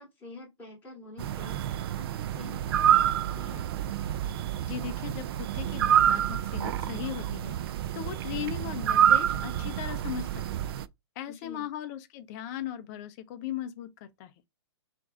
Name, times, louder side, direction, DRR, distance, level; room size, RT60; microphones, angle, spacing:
voice 1, 0.0-3.7 11.3-11.7, left 3 dB, 15° left, 2.7 m, -47 dB
sound 1, 1.2-10.9, right 10 dB, 55° right, 0.4 m, -27 dB
voice 2, 4.7-7.6 7.9-10.6 11.2-14.3, left 10 dB, 40° left, 0.6 m, -38 dB
4.4 x 2.6 x 3.7 m
hypercardioid pair, 135°, 14 cm